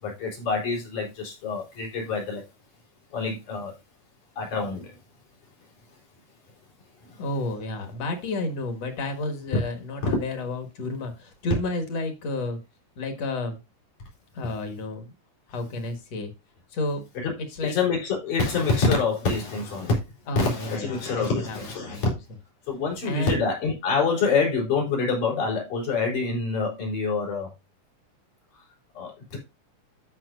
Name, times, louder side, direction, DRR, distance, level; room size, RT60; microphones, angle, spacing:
voice 1, 0.0-2.4 3.1-3.7 4.4-5.0 7.0-7.2 17.2-17.3 17.6-20.0 20.4-22.1 22.7-27.5 29.0-29.4, left 4 dB, 80° left, 5.2 m, -26 dB
voice 2, 7.2-12.6 13.0-13.6 14.3-15.1 15.5-16.3 16.7-17.0 17.5-17.7 20.3-22.0 23.0-23.4, left 2 dB, 60° left, 2.6 m, -31 dB
12.5 x 5.9 x 2.6 m
omnidirectional pair, 3.5 m